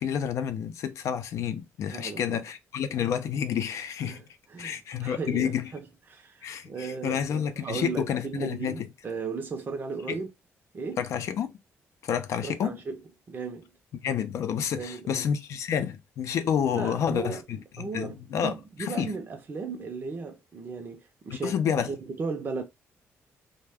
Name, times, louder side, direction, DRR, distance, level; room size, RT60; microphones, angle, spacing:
voice 1, 0.0-4.2 4.6-5.7 6.4-8.9 10.1-10.2 11.0-11.5 12.0-12.8 14.0-18.5 18.8-19.1 21.4-21.9, left 8 dB, 75° left, 0.5 m, -29 dB
voice 2, 1.9-2.4 4.0-4.2 4.5-5.8 6.1-10.3 10.7-11.0 12.4-13.0 13.3-13.7 14.7-15.3 16.7-22.6, right 4 dB, 40° right, 0.5 m, -36 dB
2.3 x 2.1 x 3.3 m
cardioid pair, 110°, 5 cm